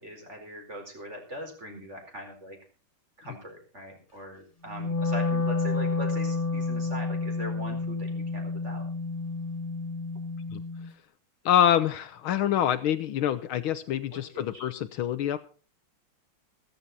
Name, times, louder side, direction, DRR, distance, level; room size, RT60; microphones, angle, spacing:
voice 1, 0.0-2.6 3.2-8.8 14.1-14.6, equal, 30° right, 2 dB, 4.9 m, -41 dB
Wind instrument woodwind instrument, 4.7-10.9, left 3 dB, 25° left, 0.8 m, -30 dB
voice 2, 11.5-15.4, left 10 dB, 75° left, 12 dB, 1.6 m, -26 dB
15.0 x 13.5 x 4.1 m, 0.36 s
omnidirectional pair, 2.4 m